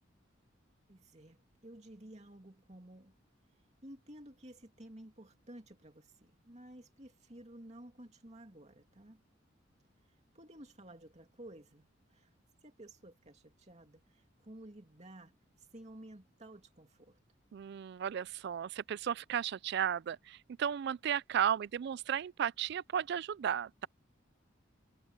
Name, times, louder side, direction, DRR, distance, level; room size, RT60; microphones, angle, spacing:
voice 1, 0.9-3.2 3.8-9.2 10.0-12.3 12.6-17.2, right 1 dB, 35° right, 2.5 m, -54 dB
voice 2, 17.5-23.9, right 9 dB, 55° right, 0.3 m, -34 dB
head